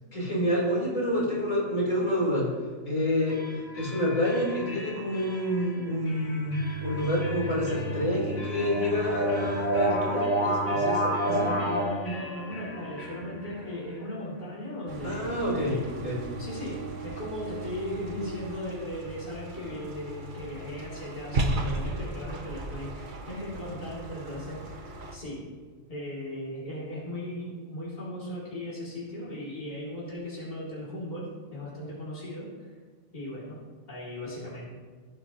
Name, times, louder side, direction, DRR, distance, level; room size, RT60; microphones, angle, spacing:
voice 1, 0.1-2.5 2.8-3.4 3.8-11.5 15.0-16.2, left 1 dB, 70° left, -6 dB, 4.3 m, -28 dB
sound 1, 3.3-16.9, left 1 dB, 85° left, 2.8 m, -44 dB
sound 2, 6.5-11.8, right 1 dB, 50° left, 2.5 m, -29 dB
voice 2, 11.3-15.3 15.7-15.9 16.4-25.4 25.9-32.7 33.1-33.6 33.9-34.7, left 1 dB, 30° left, -8 dB, 3.0 m, -37 dB
sound 3, 14.9-25.2, right 2 dB, 40° right, 1.0 m, -36 dB
17.0 x 8.8 x 3.0 m, 1.5 s
omnidirectional pair, 1.4 m